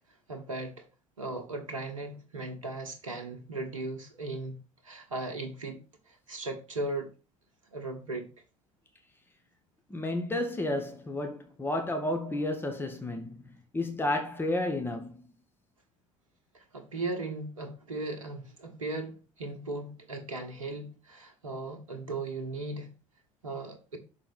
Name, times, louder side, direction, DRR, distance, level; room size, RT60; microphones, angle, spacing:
voice 1, 0.3-0.9 1.2-5.8 6.1-7.1 7.7-8.3 16.5-22.9 23.4-24.0, right 2 dB, 85° right, 1.2 m, -37 dB
voice 2, 9.9-13.4 13.7-15.2, left 1 dB, 15° left, 1.4 m, -31 dB
6.0 x 4.5 x 5.5 m
hypercardioid pair, 65°, 16 cm